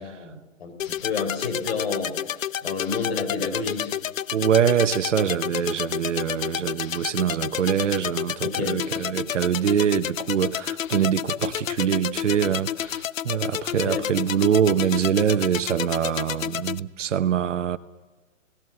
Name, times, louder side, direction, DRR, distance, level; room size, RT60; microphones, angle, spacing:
voice 1, 0.0-4.0 8.4-8.8 13.7-14.2, left 4 dB, 50° left, 4.4 m, -30 dB
sound 1, 0.8-16.8, left 10 dB, 85° left, 0.6 m, -30 dB
voice 2, 4.3-17.8, right 8 dB, 65° right, 1.1 m, -24 dB
27.0 x 17.5 x 7.7 m
hypercardioid pair, 160°, 39 cm